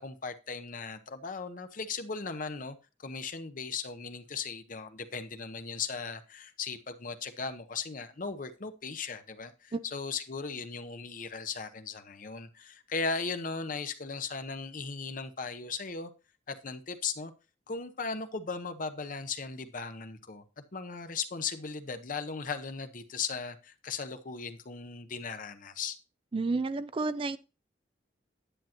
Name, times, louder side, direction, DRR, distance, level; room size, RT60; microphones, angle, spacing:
voice 1, 0.0-16.1 16.5-17.3 17.7-20.4 20.7-26.0, left 5 dB, 50° left, 0.8 m, -37 dB
voice 2, 26.3-27.4, right 3 dB, 30° right, 0.4 m, -30 dB
10.0 x 9.0 x 2.9 m
head